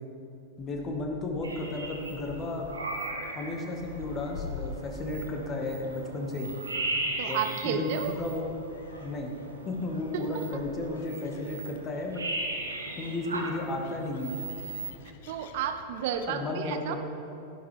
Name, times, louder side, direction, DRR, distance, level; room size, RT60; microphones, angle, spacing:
Gull seagull, 0.6-16.3, left 4 dB, 55° left, 0.8 m, -48 dB
voice 1, 0.6-2.7 3.3-6.5 7.3-8.5 9.0-9.3 9.7-12.3 13.0-14.3 16.3-17.0, left 2 dB, 25° left, 1 dB, 1.7 m, -33 dB
sound 1, 1.4-14.9, right 2 dB, 75° right, 1.3 m, -38 dB
voice 2, 7.2-8.1 10.1-10.6 15.3-17.0, right 8 dB, 50° right, 8 dB, 0.6 m, -32 dB
12.5 x 10.5 x 3.5 m, 2.8 s
figure-of-eight pair, 90°, 0 cm